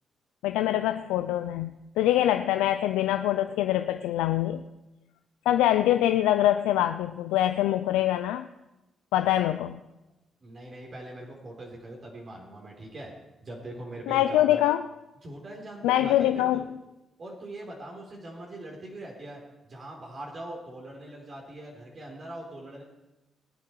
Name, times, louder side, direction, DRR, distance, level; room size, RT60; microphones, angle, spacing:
voice 1, 0.4-4.6 5.5-8.5 9.1-9.8 14.1-14.9 15.8-16.7, left 13 dB, 85° left, 9 dB, 0.4 m, -24 dB
voice 2, 10.4-13.1 13.4-14.6 15.2-16.7 17.2-22.8, right 1 dB, 50° right, -2 dB, 3.8 m, -42 dB
20.0 x 8.7 x 4.6 m, 0.98 s
supercardioid pair, 55°, 0 cm